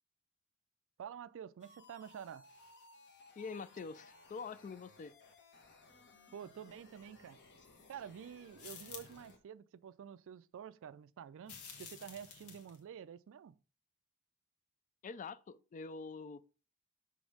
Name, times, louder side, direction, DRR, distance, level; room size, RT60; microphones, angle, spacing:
voice 1, 1.0-2.5 6.3-7.4 7.9-13.6, right 8 dB, 60° right, 0.3 m, -49 dB
sound 1, 1.6-9.4, left 2 dB, 55° left, 1.2 m, -61 dB
voice 2, 3.4-5.1 15.0-16.4, left 4 dB, 35° left, 0.3 m, -45 dB
sound 2, 8.6-9.3 11.4-12.8, left 6 dB, 85° left, 1.3 m, -51 dB
6.3 x 3.4 x 4.9 m
head